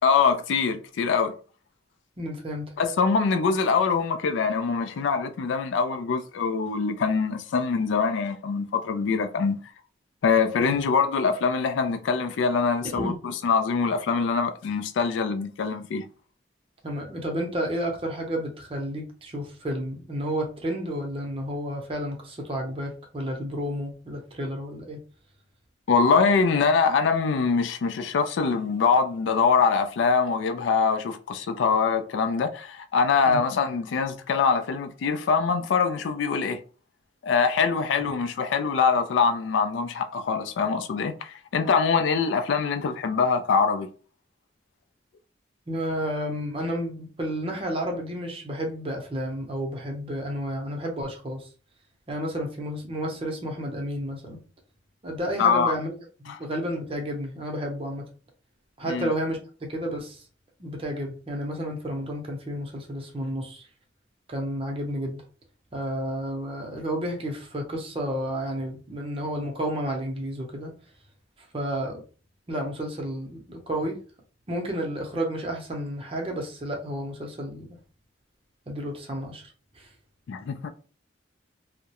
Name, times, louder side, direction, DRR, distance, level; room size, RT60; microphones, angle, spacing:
voice 1, 0.0-1.4 2.8-9.6 10.2-16.1 25.9-36.6 37.2-43.9 55.4-55.7 56.3-56.4 58.9-59.1 80.3-80.7, left 5 dB, 80° left, 0.3 m, -24 dB
voice 2, 2.2-2.7 10.6-10.8 12.8-13.2 16.8-25.0 33.3-33.4 38.0-38.1 45.7-51.5 52.1-54.4 55.0-55.9 56.2-58.0 58.8-59.4 59.7-60.2 60.6-63.6 64.3-65.2 65.7-70.7 71.5-72.0 72.5-74.0 74.5-77.8 78.7-79.5 79.8-79.9, equal, 30° right, 0.6 m, -31 dB
2.3 x 2.0 x 2.8 m
head